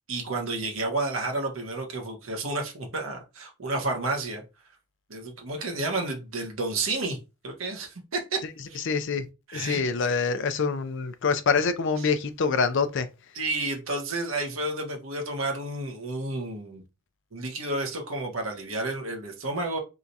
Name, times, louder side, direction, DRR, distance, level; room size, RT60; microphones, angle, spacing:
voice 1, 0.1-4.4 5.1-7.2 7.4-8.4 8.7-8.8 9.5-9.8 13.3-16.8 17.3-19.8, right 2 dB, 75° right, 1.3 m, -31 dB
voice 2, 8.9-9.3 9.5-13.1, left 5 dB, 60° left, 0.5 m, -25 dB
3.6 x 2.7 x 4.5 m
head